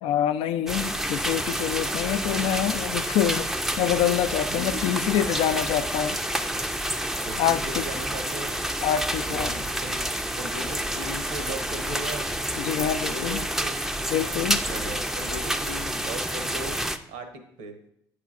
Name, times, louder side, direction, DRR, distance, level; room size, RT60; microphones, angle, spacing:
voice 1, 0.0-3.5 3.8-6.2 7.4-7.6 8.8-9.5 12.6-13.4 14.1-14.6, left 10 dB, 70° left, 10 dB, 0.3 m, -26 dB
sound 1, 0.7-17.0, right 1 dB, 5° right, 0.4 m, -29 dB
voice 2, 2.2-2.5 4.5-4.8 7.2-8.5 9.3-12.3 13.0-13.8 14.7-16.8 17.1-17.7, right 2 dB, 85° right, 5 dB, 0.9 m, -38 dB
8.4 x 4.9 x 2.4 m, 0.76 s
hypercardioid pair, 60°, 10 cm